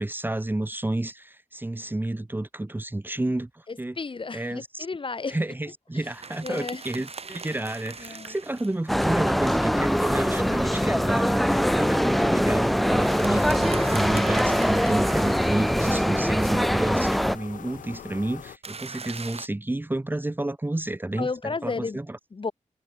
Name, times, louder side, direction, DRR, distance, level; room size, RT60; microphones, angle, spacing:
voice 1, 0.0-3.9 4.3-4.9 5.3-22.2, right 1 dB, 15° right, 1.0 m, -30 dB
voice 2, 3.7-5.4 5.9-6.1 6.4-7.0 8.0-8.4 21.2-22.0 22.3-22.5, left 4 dB, 40° left, 1.3 m, -34 dB
sound 1, 6.0-10.4 12.8-16.2 18.6-19.5, right 4 dB, 50° right, 3.3 m, -41 dB
sound 2, 8.9-17.4, equal, ahead, 0.3 m, -23 dB
sound 3, 9.7-18.6, left 9 dB, 75° left, 0.5 m, -42 dB
cardioid pair, 70°, 13 cm